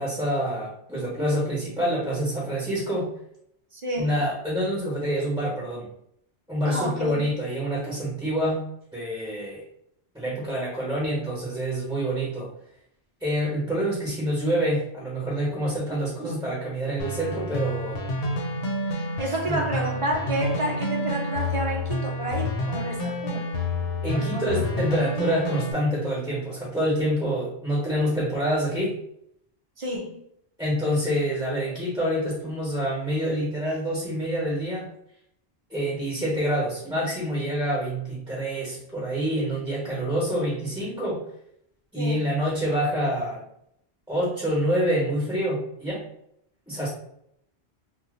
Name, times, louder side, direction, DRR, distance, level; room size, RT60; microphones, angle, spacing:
voice 1, 0.0-3.1 4.0-5.9 6.5-8.6 8.9-9.6 10.1-12.5 13.2-18.0 19.5-19.6 24.0-29.0 30.6-34.9 35.7-41.2 41.9-43.4 44.1-46.1 46.7-46.9, equal, 5° right, -7 dB, 1.1 m, -27 dB
voice 2, 3.7-4.1 6.6-7.3 18.9-23.5 24.1-24.6 29.8-30.2 42.0-42.2, right 1 dB, 45° right, 1 dB, 0.4 m, -30 dB
sound 1, 17.0-25.7, left 1 dB, 70° left, 0.8 m, -29 dB
2.8 x 2.2 x 3.7 m, 0.73 s
omnidirectional pair, 1.1 m